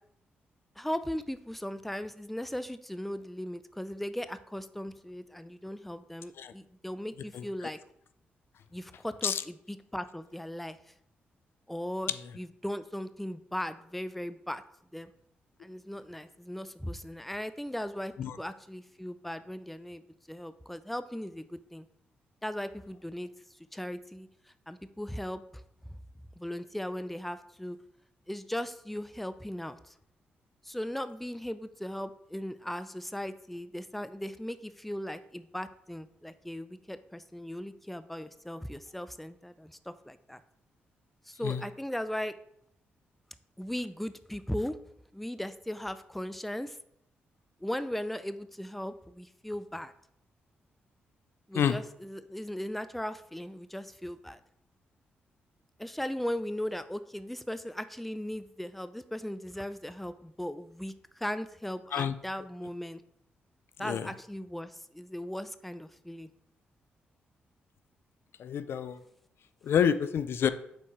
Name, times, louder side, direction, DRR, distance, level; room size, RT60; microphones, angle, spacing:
voice 1, 0.8-7.8 8.7-10.8 11.7-12.1 12.4-14.6 14.9-15.1 15.6-20.0 20.3-21.9 22.4-23.3 23.7-24.3 24.7-25.4 26.4-27.8 28.3-29.9 30.7-40.4 41.3-42.3 43.6-44.8 45.1-46.8 47.6-49.9 51.5-54.4 55.8-63.0 63.8-66.3, left 1 dB, 5° left, 12 dB, 0.4 m, -38 dB
voice 2, 7.3-7.7 9.2-9.4 18.2-18.4 41.4-41.6 51.5-51.8 61.9-62.1 63.8-64.1 68.4-69.0 69.6-70.5, left 8 dB, 70° left, 12 dB, 0.4 m, -28 dB
7.3 x 4.4 x 3.1 m, 0.74 s
cardioid pair, 60°, 4 cm